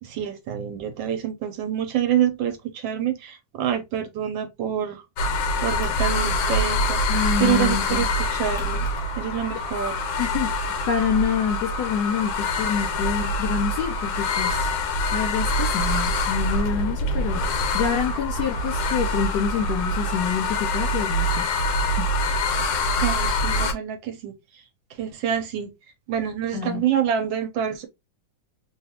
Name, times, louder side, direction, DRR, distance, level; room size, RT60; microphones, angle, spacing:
voice 1, 0.0-5.0 5.6-7.0 7.4-8.8 9.2-10.1 23.0-24.3 25.0-25.7 26.1-27.9, right 9 dB, 75° right, 1.3 m, -26 dB
sound 1, 5.2-23.7, left 1 dB, 90° left, 1.5 m, -25 dB
voice 2, 7.1-8.1 10.2-10.5 10.9-14.7 15.1-17.4 17.7-21.5 22.0-22.1 26.5-26.8, left 7 dB, 75° left, 1.0 m, -27 dB
3.3 x 2.4 x 2.7 m
omnidirectional pair, 2.2 m